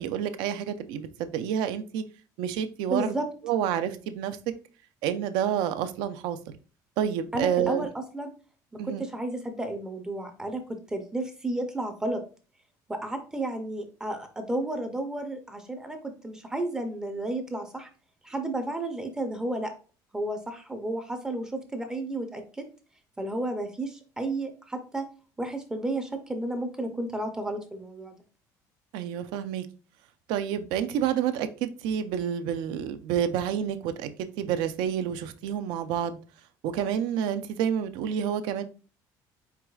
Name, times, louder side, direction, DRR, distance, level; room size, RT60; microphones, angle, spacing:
voice 1, 0.0-2.0 2.4-3.1 3.4-4.4 5.0-6.6 7.0-7.9 8.8-9.0 28.9-29.7 30.3-34.1 34.4-36.2 36.6-38.6, right 9 dB, 75° right, 11 dB, 0.5 m, -29 dB
voice 2, 2.9-3.3 7.3-8.3 8.8-12.2 12.9-17.9 18.2-19.7 20.1-22.7 23.2-25.1 25.4-28.2, right 2 dB, 10° right, 6 dB, 0.4 m, -32 dB
4.6 x 3.9 x 2.3 m, 0.36 s
cardioid pair, 175°, 8 cm